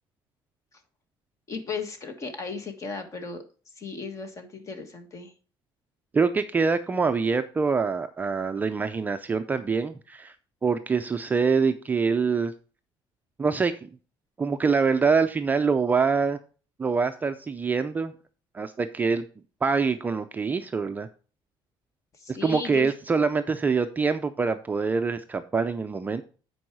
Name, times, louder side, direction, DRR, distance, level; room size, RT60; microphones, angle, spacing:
voice 1, 1.5-3.4 3.8-5.3 22.2-22.9, left 5 dB, 35° left, 7 dB, 1.5 m, -35 dB
voice 2, 6.1-10.3 10.6-12.5 13.4-13.7 14.4-16.4 16.8-18.1 18.5-19.3 19.6-21.1 22.3-26.2, right 5 dB, 20° right, 8 dB, 0.4 m, -25 dB
9.0 x 4.7 x 4.6 m, 0.37 s
cardioid pair, 150°, 9 cm